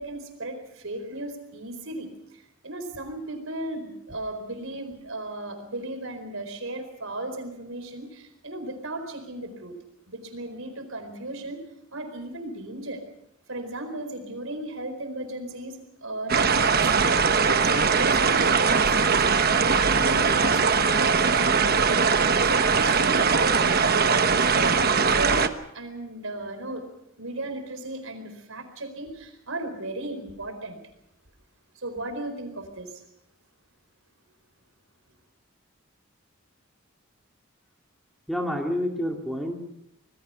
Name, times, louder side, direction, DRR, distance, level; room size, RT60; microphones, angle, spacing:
voice 1, 0.0-9.8 10.1-11.6 11.9-13.0 13.5-16.5 16.8-17.3 17.6-25.5 25.7-26.9 27.2-30.8 31.7-33.0, right 1 dB, 70° right, 7 dB, 4.5 m, -36 dB
sound 1, 16.3-25.5, right 5 dB, 45° right, 1.2 m, -21 dB
voice 2, 38.3-39.6, equal, ahead, 1 dB, 2.5 m, -28 dB
26.5 x 20.0 x 5.7 m, 0.78 s
head